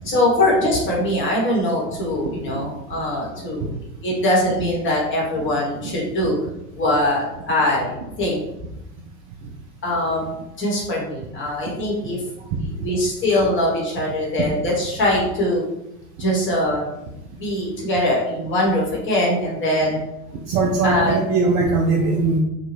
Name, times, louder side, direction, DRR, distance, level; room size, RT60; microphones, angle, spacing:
voice 1, 0.0-3.7 4.0-6.4 6.8-8.4 9.8-12.2 12.8-15.6 16.2-16.9 17.4-20.0 20.8-21.2, left 1 dB, 25° left, -3 dB, 1.1 m, -22 dB
voice 2, 20.5-22.4, right 3 dB, 35° right, -1 dB, 0.4 m, -20 dB
2.7 x 2.3 x 3.1 m, 0.90 s
figure-of-eight pair, 85°, 44 cm